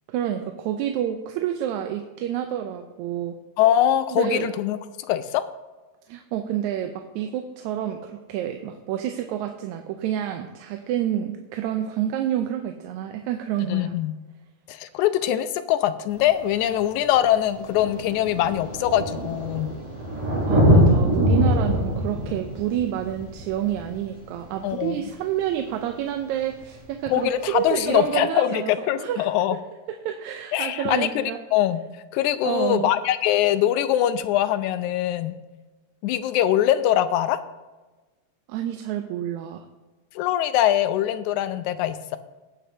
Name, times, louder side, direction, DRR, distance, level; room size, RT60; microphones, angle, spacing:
voice 1, 0.1-3.4 4.2-4.5 6.1-13.9 20.5-29.3 29.9-31.4 32.4-32.9 38.5-39.7, right 11 dB, 85° right, 6 dB, 2.0 m, -28 dB
voice 2, 3.6-5.4 13.7-14.2 14.7-19.7 24.6-25.0 27.1-29.6 30.5-31.8 32.1-35.4 36.0-37.4 40.2-42.2, left 11 dB, 85° left, 12 dB, 2.0 m, -23 dB
Thunder, 16.2-16.3 17.2-17.3 17.5-24.9 26.5-26.6, equal, 35° right, 4.6 m, -23 dB
19.5 x 7.6 x 2.7 m, 1.2 s
omnidirectional pair, 3.3 m